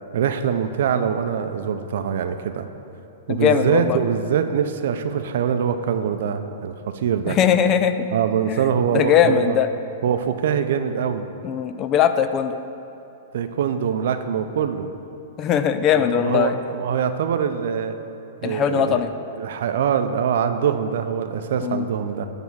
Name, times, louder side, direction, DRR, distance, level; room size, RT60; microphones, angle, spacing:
voice 1, 0.1-2.7 3.3-7.4 8.1-9.6 10.0-11.2 13.3-14.9 15.9-17.9 18.4-19.0 19.4-22.3, right 8 dB, 70° right, 8 dB, 0.6 m, -23 dB
voice 2, 3.3-4.0 7.3-8.0 8.5-8.7 8.9-9.7 11.4-12.6 15.4-16.6 18.4-19.1 21.6-21.9, left 8 dB, 30° left, 10 dB, 0.4 m, -20 dB
10.5 x 3.5 x 7.2 m, 2.9 s
hypercardioid pair, 130°, 0 cm